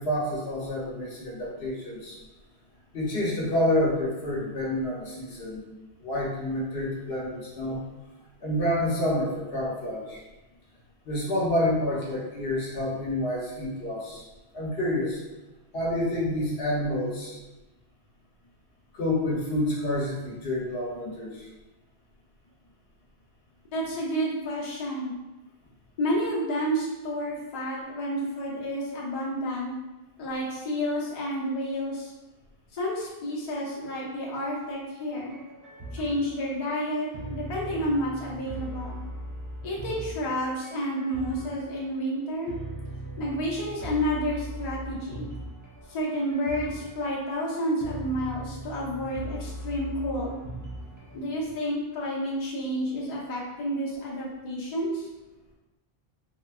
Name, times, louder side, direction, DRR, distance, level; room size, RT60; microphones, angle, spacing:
voice 1, 0.0-2.2 2.9-5.6 6.0-7.8 8.4-10.2 11.0-14.2 14.5-15.2 15.7-17.4 18.9-21.3, left 1 dB, 65° left, -5 dB, 1.0 m, -28 dB
voice 2, 23.7-25.2 26.0-29.7 30.2-32.1 32.7-35.3 35.9-39.0 39.6-42.5 43.2-45.3 45.9-50.4 51.1-55.1, equal, 45° left, -5 dB, 0.7 m, -30 dB
sound 1, 35.2-51.2, right 1 dB, 30° right, 0.4 m, -40 dB
3.8 x 2.2 x 2.3 m, 1.1 s
omnidirectional pair, 1.1 m